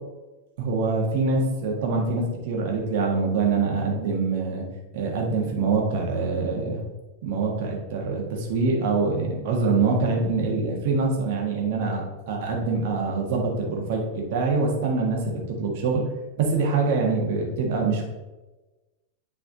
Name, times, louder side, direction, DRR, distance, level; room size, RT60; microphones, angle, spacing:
voice 1, 0.6-4.6 4.9-6.8 7.2-16.0 16.4-18.1, right 4 dB, 50° right, 0 dB, 1.6 m, -25 dB
7.8 x 4.4 x 3.9 m, 1.1 s
figure-of-eight pair, 90°, 0 cm